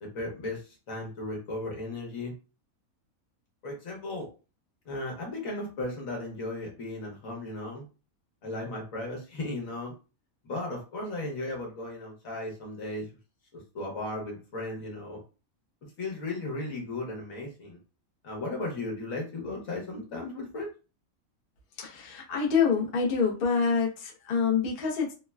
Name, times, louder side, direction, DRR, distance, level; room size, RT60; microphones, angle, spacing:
voice 1, 0.0-2.3 3.6-4.3 4.8-7.8 8.4-9.9 10.4-13.1 13.5-15.2 15.8-17.8 18.2-20.7, left 2 dB, 70° left, 0 dB, 1.3 m, -36 dB
voice 2, 21.8-25.1, left 6 dB, 50° left, -1 dB, 0.7 m, -26 dB
3.3 x 2.1 x 2.2 m, 0.33 s
omnidirectional pair, 1.5 m